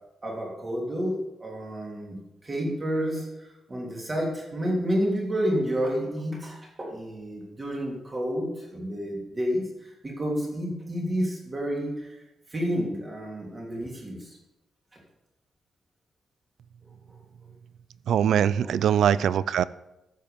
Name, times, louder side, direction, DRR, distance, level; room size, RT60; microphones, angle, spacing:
voice 1, 0.2-2.2 2.4-3.3 3.7-9.6 10.0-12.1 12.5-14.3 18.6-18.7, equal, 20° right, 3.0 m, -30 dB
voice 2, 18.1-19.6, right 9 dB, 85° right, 0.4 m, -22 dB
13.5 x 7.7 x 5.1 m
wide cardioid pair, 170°, 0 cm